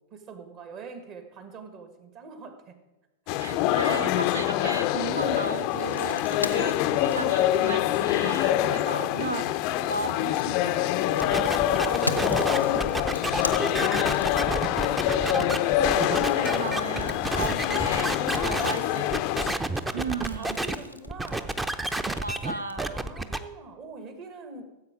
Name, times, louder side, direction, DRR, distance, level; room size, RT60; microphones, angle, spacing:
voice 1, 0.0-2.8 3.3-3.4 3.7-3.9 6.4-7.1 8.6-9.2 9.7-10.2 11.4-15.4 17.3-17.8 18.3-19.1 19.9-20.0 20.3-21.7 22.9-24.8, right 5 dB, 40° right, 7 dB, 1.7 m, -44 dB
sound 1, 3.3-19.5, left 13 dB, 45° left, 0.5 m, -25 dB
voice 2, 3.4-11.2 15.6-19.0 19.4-19.6 19.9-20.6 22.2-23.1, right 4 dB, 75° right, 12 dB, 0.8 m, -35 dB
sound 2, 5.7-8.6 10.0-14.8 16.2-22.7, left 1 dB, 90° left, 0.8 m, -39 dB
sound 3, 11.2-18.7 19.1-20.8 21.1-23.4, right 2 dB, 10° right, 0.7 m, -30 dB
14.5 x 8.0 x 5.0 m, 1.1 s
figure-of-eight pair, 90°, 0 cm